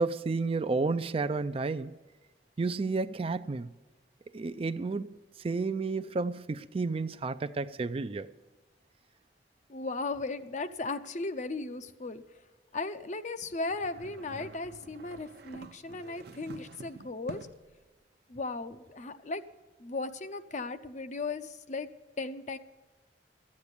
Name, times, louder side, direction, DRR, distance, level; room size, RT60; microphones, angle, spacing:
voice 1, 0.0-1.9 2.6-3.7 4.3-5.1 5.4-8.3, right 3 dB, 35° right, 0.4 m, -31 dB
voice 2, 9.7-12.2 12.7-17.4 18.3-19.4 19.8-21.9 22.2-22.6, left 3 dB, 45° left, 0.7 m, -36 dB
sound 1, 13.7-17.7, right 2 dB, 60° right, 0.7 m, -48 dB
13.5 x 8.6 x 8.2 m
head